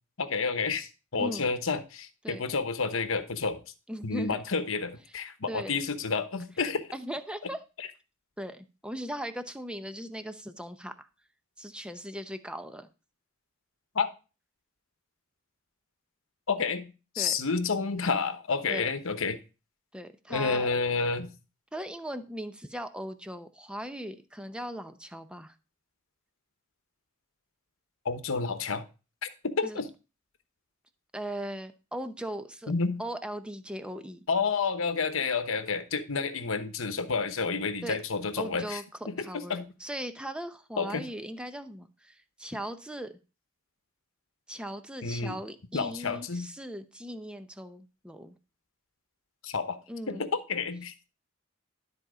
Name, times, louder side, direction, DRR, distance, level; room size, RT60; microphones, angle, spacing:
voice 1, 0.2-3.6 4.0-6.9 13.9-14.1 16.5-19.4 20.3-21.3 28.0-28.8 29.2-29.9 32.7-33.0 34.3-38.8 39.1-39.7 40.8-41.0 45.0-45.4 45.7-46.5 49.4-49.8 50.1-51.1, left 4 dB, 70° left, 10 dB, 1.0 m, -30 dB
voice 2, 1.2-1.5 2.2-2.4 3.9-4.4 5.5-5.7 6.9-7.6 8.4-11.1 11.6-12.9 17.2-17.3 18.7-18.9 19.9-20.7 21.7-25.5 29.6-29.8 31.1-32.7 33.0-34.2 37.8-38.0 38.4-43.1 44.5-48.4 49.9-50.3, equal, 5° right, 9 dB, 0.7 m, -38 dB
12.5 x 4.3 x 4.9 m, 0.31 s
head